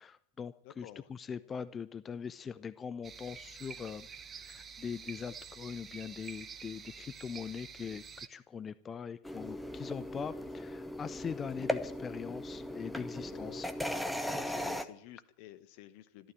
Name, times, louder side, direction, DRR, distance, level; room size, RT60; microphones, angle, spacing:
voice 1, 0.0-4.1 4.5-13.7, left 6 dB, 20° left, 14 dB, 0.6 m, -42 dB
voice 2, 0.6-1.1 13.0-13.6 14.1-16.3, left 13 dB, 45° left, 12 dB, 1.0 m, -52 dB
sound 1, 3.0-8.3, right 6 dB, 20° right, 0.9 m, -48 dB
sound 2, 9.2-14.8, left 1 dB, ahead, 1.0 m, -38 dB
14.0 x 12.5 x 7.5 m, 0.67 s
figure-of-eight pair, 90°, 0 cm